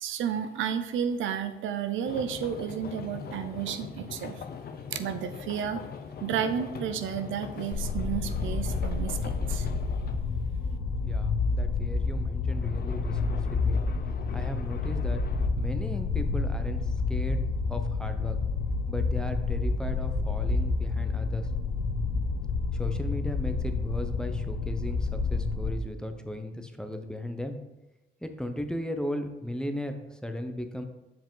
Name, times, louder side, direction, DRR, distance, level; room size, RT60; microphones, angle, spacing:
voice 1, 0.0-4.4 4.9-5.8 6.2-9.7, right 8 dB, 80° right, 9 dB, 0.6 m, -32 dB
sound 1, 2.1-10.3 12.5-15.5, left 6 dB, 50° left, 0.6 m, -42 dB
sound 2, 7.7-25.7, left 4 dB, 90° left, 0.8 m, -29 dB
voice 2, 11.0-13.8 14.3-15.2 15.6-17.4 17.7-18.4 18.9-21.5 22.7-27.6 28.2-30.9, left 1 dB, 5° left, 6 dB, 0.7 m, -36 dB
7.5 x 4.8 x 3.9 m, 1.0 s
cardioid pair, 90°, 20 cm